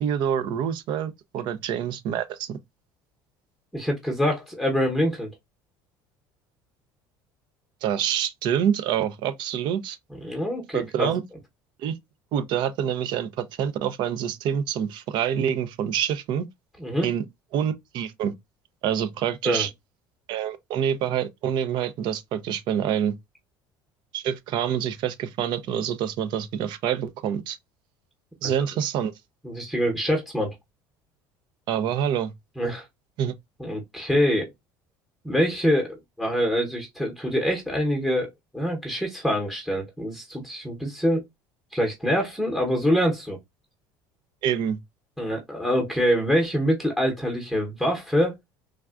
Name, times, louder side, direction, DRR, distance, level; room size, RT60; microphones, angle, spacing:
voice 1, 0.0-2.6 7.8-10.0 10.7-11.2 11.8-11.9 12.3-16.5 17.0-17.2 17.5-18.3 18.8-19.7 20.3-23.2 24.1-27.6 28.4-29.1 31.7-32.3 33.2-33.3 44.4-44.8, right 9 dB, 60° right, 0.5 m, -26 dB
voice 2, 3.7-5.3 10.2-11.1 16.8-17.1 19.4-19.7 28.4-28.5 29.4-30.5 32.6-32.8 33.6-34.5 35.2-41.2 41.7-43.4 45.2-48.3, equal, ahead, 0.8 m, -25 dB
3.4 x 2.3 x 2.3 m
cardioid pair, 125°, 9 cm